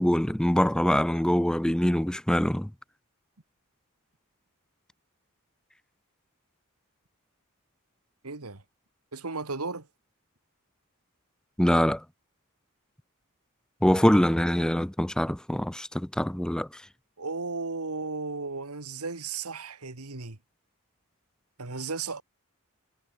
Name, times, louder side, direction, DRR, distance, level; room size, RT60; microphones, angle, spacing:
voice 1, 0.0-2.7 11.6-12.0 13.8-16.8, equal, 5° left, 0.4 m, -24 dB
voice 2, 8.2-8.6 9.1-9.9 17.2-20.4 21.6-22.2, right 4 dB, 85° right, 2.0 m, -35 dB
head